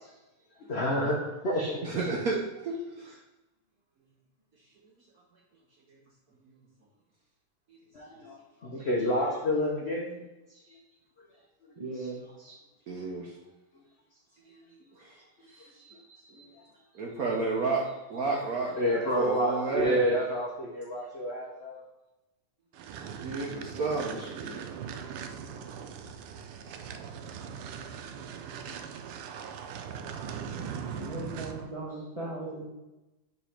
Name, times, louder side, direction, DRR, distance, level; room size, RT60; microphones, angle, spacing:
voice 1, 0.7-2.1 7.9-10.8 11.2-11.3 12.4-12.5 15.5-16.7 18.8-21.8, equal, 85° left, -1 dB, 0.5 m, -30 dB
voice 2, 1.8-3.2 12.9-13.3 14.5-14.6 15.0-15.2 16.9-18.8 19.2-20.0 23.2-24.7, right 3 dB, 65° right, -1 dB, 0.9 m, -31 dB
voice 3, 11.8-12.2 30.9-32.6, right 2 dB, 25° right, -3 dB, 0.7 m, -37 dB
sound 1, 22.7-31.7, right 7 dB, 85° right, 1.5 m, -40 dB
5.0 x 4.0 x 5.7 m, 1.0 s
omnidirectional pair, 2.4 m